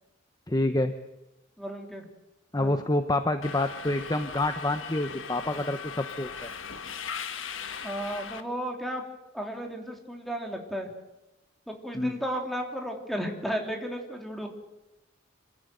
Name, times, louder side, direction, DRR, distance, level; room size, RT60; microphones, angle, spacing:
voice 1, 0.5-0.9 2.5-6.5 11.9-12.2, left 1 dB, 20° left, 8 dB, 0.9 m, -27 dB
voice 2, 1.6-2.1 2.6-2.8 7.8-9.0 9.3-10.9 11.7-14.5, equal, ahead, 2 dB, 3.1 m, -34 dB
Subway metro underground, 3.4-8.4, left 6 dB, 80° left, 1.5 m, -39 dB
26.5 x 15.0 x 9.2 m, 1.0 s
head